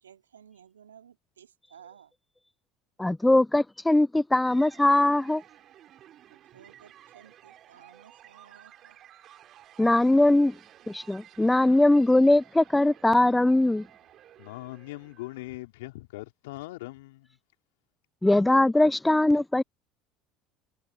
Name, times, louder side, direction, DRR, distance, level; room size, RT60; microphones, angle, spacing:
voice 1, 0.0-2.1 6.3-9.0, right 8 dB, 85° right, 2.2 m, -55 dB
voice 2, 3.0-5.4 9.8-10.5 10.9-13.8 18.2-19.6, left 1 dB, 10° left, 0.3 m, -21 dB
sound 1, 4.5-15.6, right 11 dB, 50° right, 3.2 m, -54 dB
voice 3, 14.4-17.4, left 19 dB, 75° left, 3.8 m, -41 dB
hypercardioid pair, 65°, 0 cm